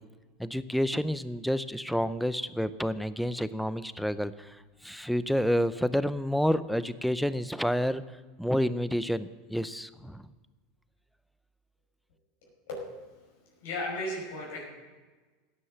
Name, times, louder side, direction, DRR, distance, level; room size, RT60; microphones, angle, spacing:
voice 1, 0.4-4.6 4.8-8.0 8.4-10.2, equal, ahead, 14 dB, 0.6 m, -29 dB
voice 2, 13.6-14.6, left 1 dB, 80° left, -3 dB, 5.4 m, -34 dB
15.0 x 9.9 x 7.7 m, 1.3 s
supercardioid pair, 125°, 0 cm